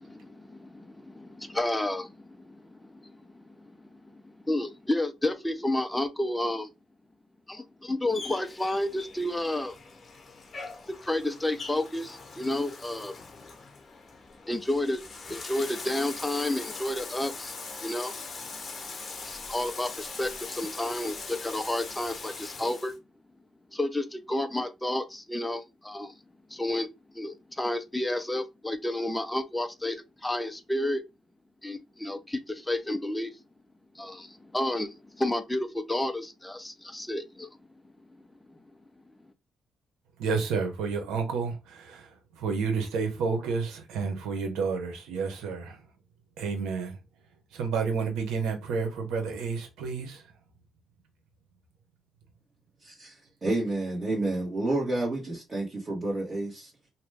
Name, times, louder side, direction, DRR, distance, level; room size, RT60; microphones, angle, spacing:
voice 1, 0.0-6.7 7.5-9.8 10.9-13.1 14.5-15.0 15.3-17.6 17.8-18.1 19.2-22.9 23.7-26.1 26.5-31.0 31.6-33.4 34.0-37.5, left 1 dB, 10° left, 0.5 m, -31 dB
Bathtub (filling or washing), 8.1-23.0, left 4 dB, 40° left, 0.8 m, -41 dB
voice 2, 40.2-45.8 46.4-47.0 47.5-50.2, right 5 dB, 90° right, 1.0 m, -30 dB
voice 3, 52.8-56.7, right 2 dB, 35° right, 1.3 m, -30 dB
2.9 x 2.2 x 3.3 m
cardioid pair, 90°, 0 cm